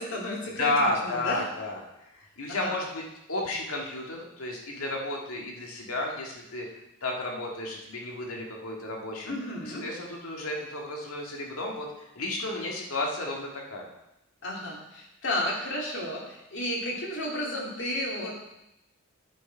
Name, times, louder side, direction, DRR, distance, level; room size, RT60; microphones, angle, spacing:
voice 1, 0.0-0.7 1.0-1.5 2.5-2.7 9.2-9.8 14.4-18.3, left 1 dB, 60° left, -2 dB, 2.4 m, -32 dB
voice 2, 0.6-1.9 2.1-3.0 3.3-6.7 7.0-9.3 9.6-13.9, left 2 dB, 85° left, 0 dB, 1.9 m, -32 dB
10.0 x 6.4 x 4.5 m, 0.87 s
head